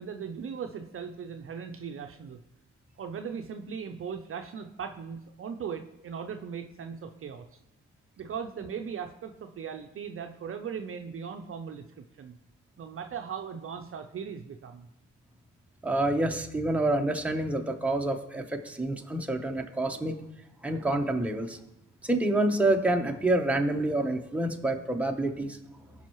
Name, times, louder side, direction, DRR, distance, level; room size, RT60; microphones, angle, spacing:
voice 1, 0.0-2.4 3.0-7.4 8.2-12.4 12.8-14.9, right 7 dB, 45° right, 5 dB, 0.6 m, -38 dB
voice 2, 15.8-20.2 20.6-21.6 22.0-25.6, right 2 dB, 5° right, 3 dB, 1.0 m, -27 dB
16.5 x 5.6 x 3.1 m, 0.86 s
cardioid pair, 90°, 30 cm